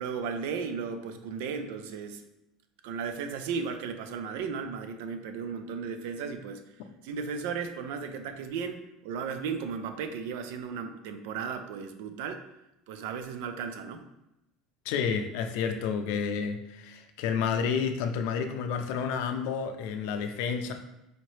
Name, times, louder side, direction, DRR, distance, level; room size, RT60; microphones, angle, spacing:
voice 1, 0.0-2.2 2.8-6.6 7.0-12.4 12.9-14.0, right 6 dB, 80° right, 8 dB, 0.4 m, -35 dB
voice 2, 14.9-20.7, left 6 dB, 75° left, 6 dB, 0.4 m, -30 dB
4.2 x 2.8 x 3.1 m, 0.88 s
cardioid pair, 140°, 0 cm